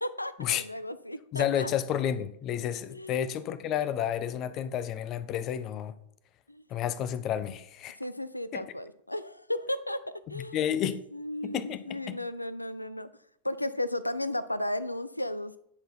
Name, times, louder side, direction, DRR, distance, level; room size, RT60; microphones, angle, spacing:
voice 1, 0.0-1.7 2.9-3.2 6.5-6.6 8.0-10.0 10.3-10.6 11.1-13.1 13.4-15.6, left 1 dB, 85° left, 0.4 m, -34 dB
voice 2, 1.3-5.9 6.7-8.0 8.5-8.6 10.3-11.0 11.4-11.8 12.1-12.2, left 9 dB, 35° left, 0.5 m, -31 dB
9.7 x 3.9 x 4.3 m
figure-of-eight pair, 90°, 0 cm